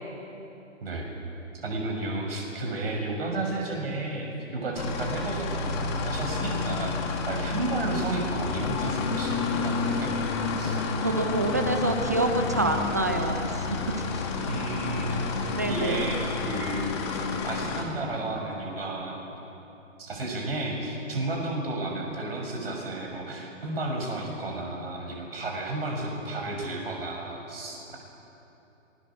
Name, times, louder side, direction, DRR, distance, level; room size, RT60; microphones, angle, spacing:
voice 1, 1.6-7.0 7.3-10.1 10.6-10.8 14.4-16.9 17.4-19.2 20.0-28.0, right 2 dB, 45° right, 0 dB, 6.9 m, -32 dB
sound 1, 4.8-17.8, left 4 dB, 20° left, 2.0 m, -30 dB
voice 2, 11.0-13.6 14.1-14.3 15.1-16.1, right 2 dB, 15° right, 5 dB, 0.6 m, -27 dB
26.0 x 22.5 x 7.4 m, 2.9 s
figure-of-eight pair, 140°, 40 cm